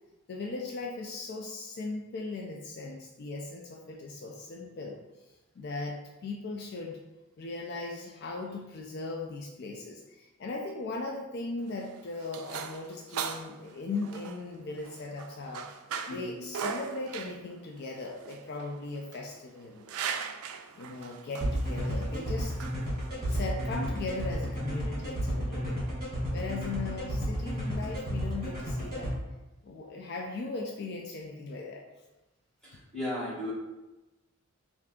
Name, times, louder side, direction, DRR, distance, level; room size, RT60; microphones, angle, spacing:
voice 1, 0.3-7.0 7.4-15.7 16.1-20.2 20.8-22.5 23.3-25.8 26.3-29.1 29.6-31.8, left 3 dB, 50° left, 1 dB, 0.3 m, -38 dB
sound 1, 11.6-23.9, right 7 dB, 90° right, 0.3 m, -40 dB
voice 2, 16.1-16.4 32.6-33.5, left 1 dB, ahead, -11 dB, 1.3 m, -36 dB
sound 2, 21.4-29.1, equal, 45° right, 1.3 m, -32 dB
3.2 x 2.5 x 3.6 m, 1.0 s
head